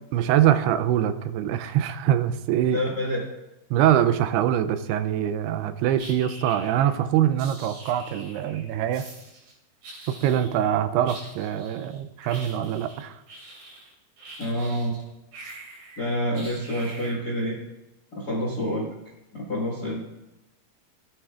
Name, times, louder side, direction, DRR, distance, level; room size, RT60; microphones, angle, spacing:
voice 1, 0.1-2.8 3.7-9.0 10.1-13.2, right 11 dB, 90° right, 11 dB, 2.6 m, -23 dB
voice 2, 2.7-3.2 14.4-14.9 16.0-17.6 18.1-18.9 19.3-20.0, equal, 55° left, -4 dB, 1.0 m, -27 dB
sound 1, 6.0-7.0 7.4-8.6 8.9-9.5 9.8-10.7 11.0-15.0 15.3-17.4, right 2 dB, 60° right, 4.2 m, -44 dB
16.0 x 8.9 x 2.4 m, 0.98 s
omnidirectional pair, 4.6 m